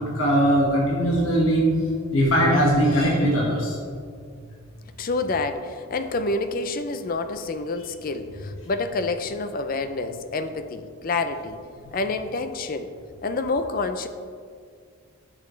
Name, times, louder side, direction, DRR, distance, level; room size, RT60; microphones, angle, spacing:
voice 1, 0.0-1.6 2.1-3.8, equal, 65° left, -4 dB, 1.7 m, -20 dB
voice 2, 5.0-11.6 11.9-12.9 13.2-14.1, left 3 dB, 40° left, 9 dB, 0.4 m, -28 dB
10.5 x 6.2 x 3.2 m, 2.1 s
head